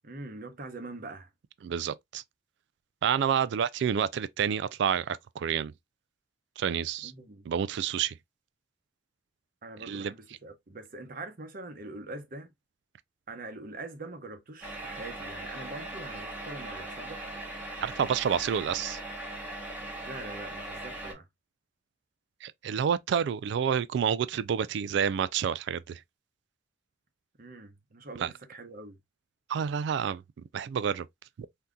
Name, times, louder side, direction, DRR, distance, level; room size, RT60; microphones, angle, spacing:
voice 1, 0.0-1.3 7.0-7.5 9.6-12.5 13.3-17.2 20.0-21.2 27.4-29.0, right 2 dB, 50° right, 0.8 m, -43 dB
voice 2, 1.6-2.2 3.0-5.7 6.6-7.1 7.5-8.1 9.9-10.1 17.8-19.0 22.4-26.0 28.2-28.3 29.5-30.2 30.5-31.1, right 8 dB, 65° right, 0.3 m, -29 dB
sound 1, 14.6-21.1, right 1 dB, 10° right, 0.9 m, -39 dB
3.6 x 2.8 x 2.3 m
head